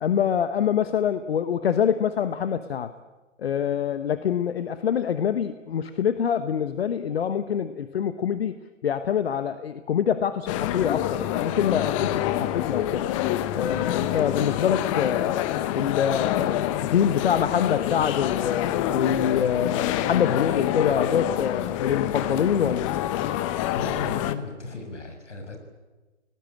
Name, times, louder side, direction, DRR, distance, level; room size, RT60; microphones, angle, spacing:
voice 1, 0.0-2.9 3.4-8.5 8.8-13.1 13.5-15.4 15.7-22.9, left 8 dB, 55° left, 11 dB, 1.2 m, -25 dB
sound 1, 10.5-24.3, left 13 dB, 25° left, 1.1 m, -27 dB
voice 2, 23.7-25.6, left 3 dB, 70° left, 4 dB, 6.8 m, -35 dB
29.5 x 19.0 x 8.7 m, 1.2 s
figure-of-eight pair, 130°, 37 cm